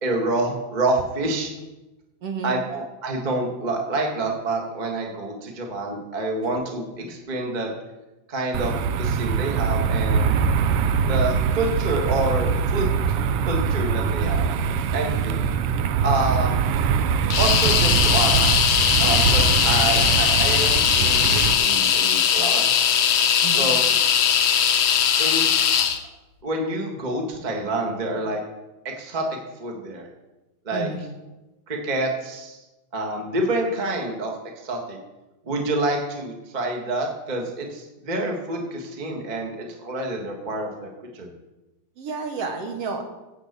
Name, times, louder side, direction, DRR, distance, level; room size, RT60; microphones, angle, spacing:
voice 1, 0.0-1.5 2.4-7.7 8.3-10.4 11.1-13.0 13.4-14.5 14.9-15.5 16.0-16.6 17.4-18.5 19.0-22.9 23.5-24.0 25.2-25.5 26.4-28.4 28.8-30.1 30.6-30.9 31.7-32.6 32.9-35.0 35.4-41.3, right 2 dB, 25° right, 1 dB, 1.0 m, -27 dB
voice 2, 2.2-2.6 23.4-23.7 30.7-31.1 42.0-43.0, right 4 dB, 60° right, 3 dB, 2.0 m, -30 dB
sound 1, 8.5-21.5, right 6 dB, 85° right, 1.3 m, -23 dB
sound 2, 17.3-26.0, left 8 dB, 90° left, 1.1 m, -20 dB
10.5 x 6.0 x 8.1 m, 1.0 s
omnidirectional pair, 3.4 m